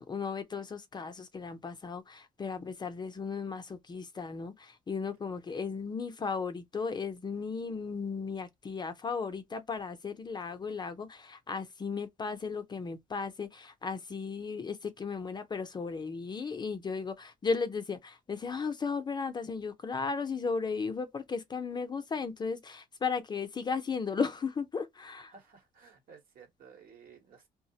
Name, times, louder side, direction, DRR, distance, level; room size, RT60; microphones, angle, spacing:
voice 1, 0.0-25.3, left 5 dB, 25° left, 0.4 m, -35 dB
voice 2, 25.3-27.5, right 6 dB, 65° right, 1.0 m, -55 dB
2.3 x 2.0 x 2.7 m
cardioid pair, 105°, 16 cm